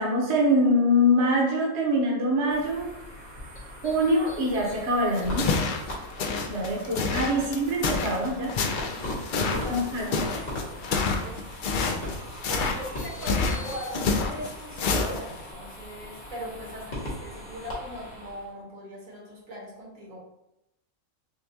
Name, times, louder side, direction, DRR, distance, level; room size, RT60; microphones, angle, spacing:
voice 1, 0.0-2.9 3.8-5.5 6.5-8.5 9.5-10.1, equal, 55° right, -2 dB, 1.1 m, -24 dB
sound 1, 2.5-18.5, left 1 dB, 45° left, 1.5 m, -39 dB
sound 2, 5.1-15.5, left 4 dB, 75° left, 0.4 m, -28 dB
voice 2, 7.3-7.7 9.6-10.2 10.5-11.8 12.5-20.2, equal, 75° right, -3 dB, 1.6 m, -40 dB
6.4 x 2.3 x 2.7 m, 0.87 s
omnidirectional pair, 1.4 m